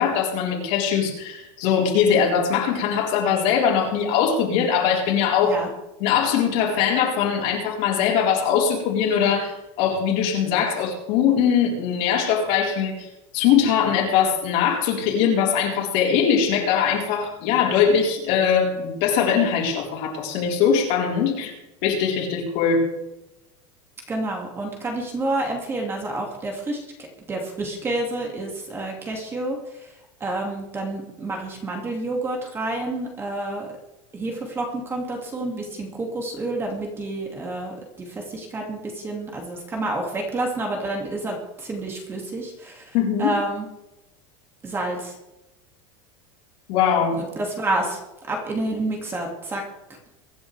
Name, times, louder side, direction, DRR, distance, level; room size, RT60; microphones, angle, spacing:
voice 1, 0.0-5.6 6.0-13.1 13.3-21.5 21.8-22.9 42.9-43.3 46.7-47.2, left 7 dB, 50° left, -2 dB, 4.3 m, -21 dB
voice 2, 24.1-26.8 27.3-29.9 30.2-33.7 34.1-42.8 43.2-43.7 44.6-45.1 47.1-48.0 48.3-49.6, right 2 dB, 15° right, 1 dB, 2.3 m, -29 dB
23.5 x 10.5 x 3.4 m, 0.94 s
supercardioid pair, 165°, 15 cm